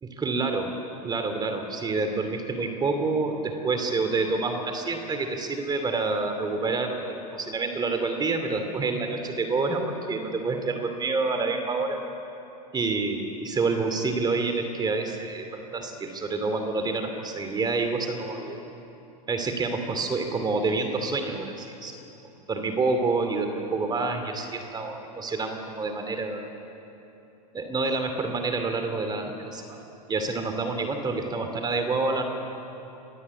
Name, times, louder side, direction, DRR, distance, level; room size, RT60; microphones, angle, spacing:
voice 1, 0.0-0.7 1.0-12.0 12.7-18.6 19.3-22.0 22.5-26.5 27.5-29.8 30.1-32.2, right 3 dB, 20° right, 6 dB, 2.8 m, -28 dB
25.5 x 20.5 x 8.5 m, 3.0 s
hypercardioid pair, 100°, 21 cm